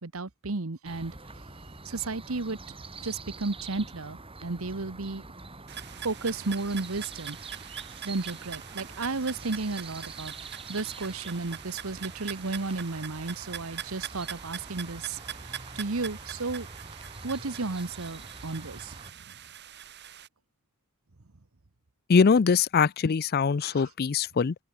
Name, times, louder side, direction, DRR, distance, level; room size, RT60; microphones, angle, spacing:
voice 1, 0.0-1.1 1.8-2.6 3.0-5.2 6.0-7.4 8.0-10.3 10.7-15.2 15.7-16.7 17.2-18.9, right 3 dB, 70° right, 1.2 m, -33 dB
sound 1, 0.9-19.1, right 3 dB, 25° right, 3.3 m, -45 dB
sound 2, 5.7-20.3, right 10 dB, 55° right, 2.6 m, -43 dB
voice 2, 22.1-24.6, left 5 dB, 45° left, 0.4 m, -22 dB
head